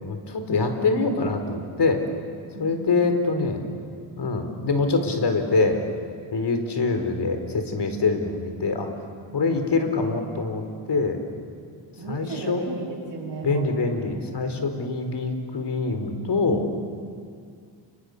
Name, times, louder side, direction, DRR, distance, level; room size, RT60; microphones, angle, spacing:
voice 1, 0.0-2.0 2.6-3.6 4.2-5.8 6.3-8.9 9.3-11.2 12.1-12.7 13.4-16.7, left 3 dB, 55° left, 6 dB, 4.6 m, -24 dB
voice 2, 2.5-2.9 12.0-13.7, right 4 dB, 55° right, -6 dB, 6.6 m, -35 dB
30.0 x 28.0 x 6.8 m, 2.2 s
cardioid pair, 70°, 48 cm